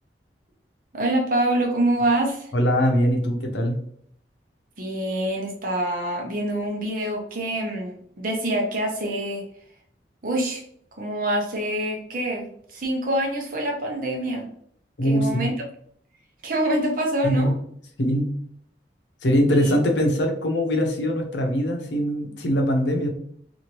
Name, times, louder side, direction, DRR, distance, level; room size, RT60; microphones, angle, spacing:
voice 1, 0.9-2.5 4.8-9.4 10.2-10.6 11.0-14.5 15.0-15.5 16.4-17.5 19.5-19.7, right 1 dB, 50° right, 0 dB, 0.8 m, -25 dB
voice 2, 2.5-3.8 15.0-15.5 17.2-17.5 18.0-18.3 19.2-23.1, equal, 90° left, 3 dB, 0.8 m, -22 dB
2.8 x 2.6 x 2.9 m, 0.64 s
head